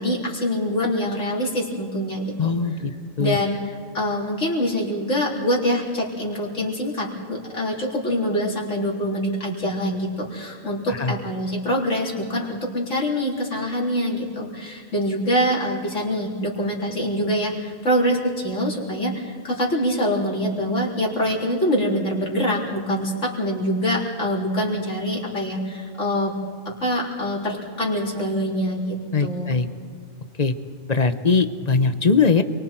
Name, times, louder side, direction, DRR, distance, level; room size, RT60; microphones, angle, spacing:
voice 1, 0.0-2.5 3.2-3.6 3.9-26.3 26.7-29.5, equal, 70° left, -3 dB, 4.4 m, -25 dB
voice 2, 2.4-2.9 3.2-3.4 10.9-11.1 29.1-29.7 30.4-30.5 30.9-32.4, left 4 dB, 35° left, 10 dB, 0.9 m, -20 dB
29.0 x 23.5 x 4.5 m, 2.2 s
omnidirectional pair, 1.3 m